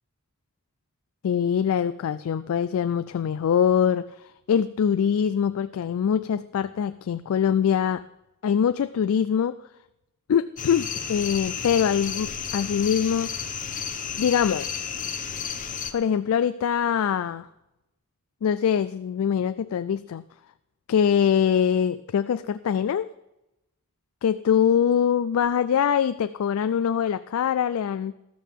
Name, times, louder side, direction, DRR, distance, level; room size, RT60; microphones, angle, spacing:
voice 1, 1.2-8.0 8.4-9.6 10.3-13.3 14.2-14.8 15.9-17.5 18.4-20.2 20.9-23.1 24.2-28.1, left 8 dB, 70° left, 12 dB, 0.3 m, -23 dB
sound 1, 10.6-15.9, left 7 dB, 35° left, 0.9 m, -32 dB
13.0 x 13.0 x 3.6 m, 0.93 s
head